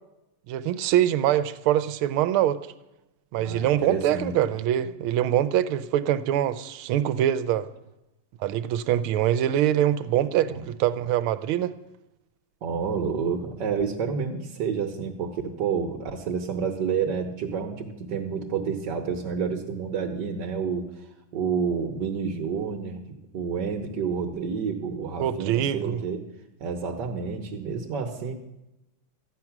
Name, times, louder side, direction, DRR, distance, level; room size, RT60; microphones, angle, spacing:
voice 1, 0.5-2.6 3.3-7.7 8.4-11.7 25.2-26.0, right 11 dB, 85° right, 13 dB, 1.5 m, -24 dB
voice 2, 3.4-4.4 10.5-10.7 12.6-21.1 21.3-26.2 26.6-28.3, right 6 dB, 60° right, 1 dB, 1.6 m, -29 dB
13.5 x 9.3 x 5.9 m, 0.95 s
omnidirectional pair, 2.3 m